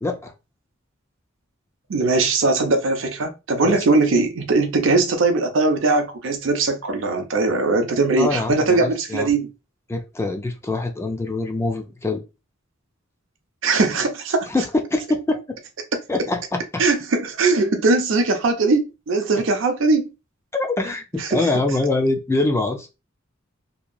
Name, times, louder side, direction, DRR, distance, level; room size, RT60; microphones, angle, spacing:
voice 1, 0.0-0.3 3.6-3.8 8.2-9.3 9.9-12.2 14.5-15.6 16.1-16.8 20.5-22.9, left 2 dB, 15° left, 0.3 m, -24 dB
voice 2, 1.9-9.5 13.6-14.5 16.8-20.1 21.2-21.5, right 3 dB, 65° right, 0.6 m, -20 dB
2.8 x 2.3 x 2.5 m
head